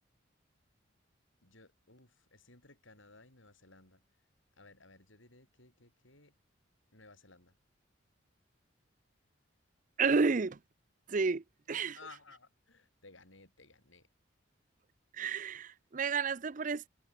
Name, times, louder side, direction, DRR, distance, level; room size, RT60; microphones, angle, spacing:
voice 1, 1.4-4.0 4.6-6.4 6.9-7.6 10.3-10.5 11.9-14.1, left 3 dB, 75° left, 7.6 m, -58 dB
voice 2, 10.0-10.5 11.1-12.0 15.2-16.9, right 4 dB, 40° right, 0.5 m, -31 dB
head